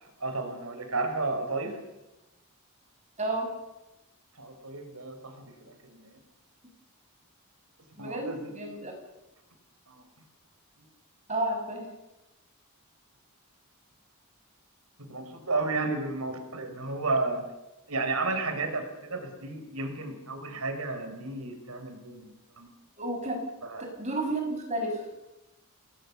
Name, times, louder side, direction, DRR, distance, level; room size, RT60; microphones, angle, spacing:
voice 1, 0.0-1.8 4.3-6.2 8.0-8.8 9.9-10.0 15.0-17.4 17.9-22.7 23.6-23.8, right 3 dB, 75° right, 6 dB, 4.6 m, -33 dB
voice 2, 3.2-3.5 8.0-8.9 11.3-11.9 23.0-23.4 23.8-24.4 24.7-25.1, right 1 dB, 30° right, 2 dB, 6.4 m, -31 dB
28.0 x 19.5 x 7.0 m, 0.95 s
head